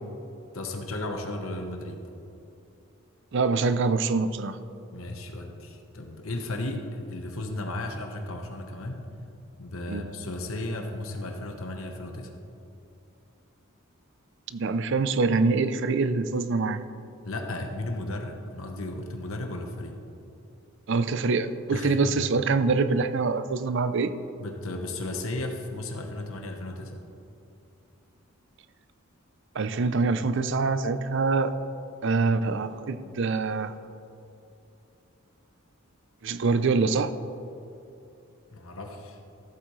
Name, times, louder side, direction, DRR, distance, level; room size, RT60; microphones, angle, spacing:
voice 1, 0.5-2.0 4.9-9.0 9.6-12.3 17.2-20.0 21.7-22.2 24.4-27.0 38.5-39.2, left 2 dB, 80° left, 3 dB, 1.0 m, -35 dB
voice 2, 3.3-4.6 9.9-10.1 14.5-16.8 20.9-24.1 29.5-31.5 32.0-33.7 36.2-37.1, right 4 dB, 60° right, 12 dB, 0.5 m, -25 dB
14.5 x 8.2 x 3.1 m, 2.8 s
head